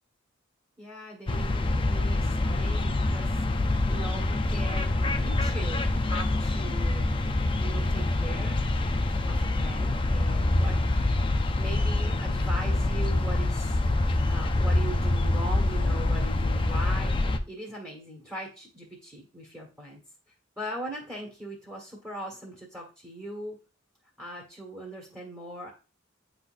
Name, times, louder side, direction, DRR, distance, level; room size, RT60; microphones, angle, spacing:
voice 1, 0.8-3.3 3.9-7.1 7.6-8.6 9.2-11.1 11.6-20.0 20.6-23.6 24.2-25.7, right 1 dB, 10° right, -3 dB, 1.6 m, -40 dB
sound 1, 1.3-17.4, left 2 dB, 25° left, 0.5 m, -26 dB
9.2 x 4.1 x 2.5 m, 0.33 s
head